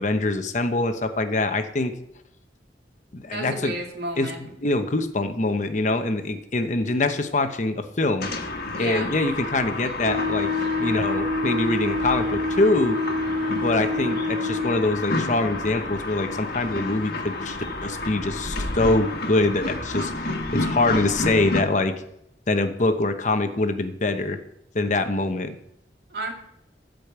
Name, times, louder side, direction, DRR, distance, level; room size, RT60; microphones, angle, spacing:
voice 1, 0.0-1.9 3.1-3.7 4.2-4.3 4.6-8.3 8.8-10.5 10.8-13.0 13.5-22.0 22.5-24.4 24.7-25.6, left 2 dB, 45° left, 7 dB, 0.9 m, -24 dB
voice 2, 3.3-4.4 8.7-9.1 26.1-26.3, right 1 dB, 60° right, 1 dB, 2.5 m, -31 dB
sound 1, 8.2-21.6, left 2 dB, 60° left, 1.6 m, -30 dB
Wind instrument woodwind instrument, 10.0-14.9, left 2 dB, 85° right, 1.1 m, -27 dB
13.5 x 5.2 x 8.1 m, 0.79 s
head